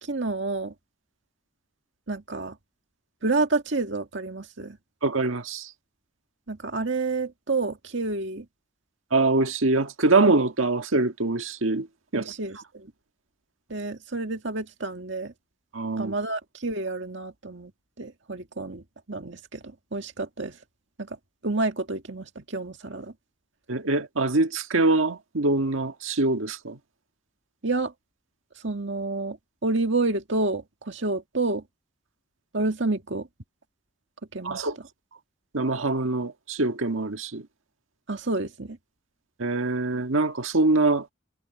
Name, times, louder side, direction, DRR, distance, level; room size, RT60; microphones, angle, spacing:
voice 1, 0.0-0.7 2.1-2.6 3.2-4.8 6.5-8.5 12.1-12.9 13.7-15.3 16.0-17.7 18.0-20.6 21.0-21.2 21.4-23.1 27.6-27.9 28.6-31.6 32.5-33.3 34.3-34.7 38.1-38.8, right 3 dB, 65° right, 1.9 m, -29 dB
voice 2, 5.0-5.7 9.1-11.9 12.1-12.3 15.7-16.1 23.7-26.8 34.4-34.8 35.5-37.5 39.4-41.1, right 2 dB, 85° right, 1.6 m, -24 dB
head